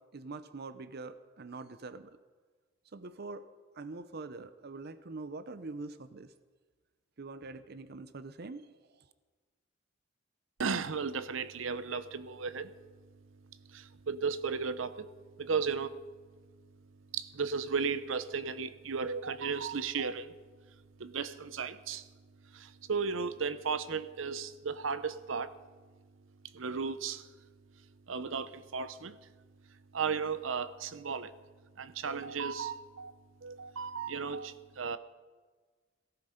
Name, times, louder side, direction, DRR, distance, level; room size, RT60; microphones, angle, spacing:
voice 1, 0.1-2.2 2.9-3.5 3.7-6.3 7.2-8.7, right 3 dB, 55° right, 13 dB, 0.7 m, -44 dB
voice 2, 10.6-12.7 13.7-15.1 15.4-15.9 17.1-20.3 21.0-22.1 22.5-25.5 26.5-27.3 28.1-29.2 29.9-31.4 31.8-33.1 33.4-35.0, right 5 dB, 90° right, 14 dB, 0.8 m, -35 dB
17.0 x 14.5 x 5.1 m, 1.4 s
head